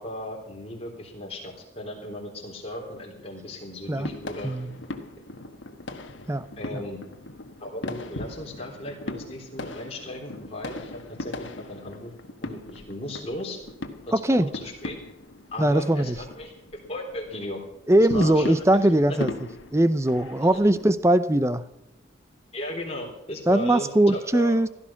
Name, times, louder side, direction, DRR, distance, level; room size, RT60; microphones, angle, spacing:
voice 1, 0.0-4.6 6.6-7.0 7.6-12.1 12.4-13.6 14.1-14.9 15.5-16.5 16.9-17.6 18.1-18.6 19.1-19.2 20.4-20.6 22.5-24.6, left 1 dB, 30° left, 0 dB, 3.8 m, -36 dB
sound 1, 3.8-20.9, left 2 dB, 75° left, 1.4 m, -39 dB
voice 2, 14.1-14.5 15.6-16.2 17.9-19.3 19.7-21.6 23.5-24.7, right 1 dB, 15° right, 14 dB, 0.6 m, -21 dB
16.0 x 12.5 x 5.9 m, 0.87 s
head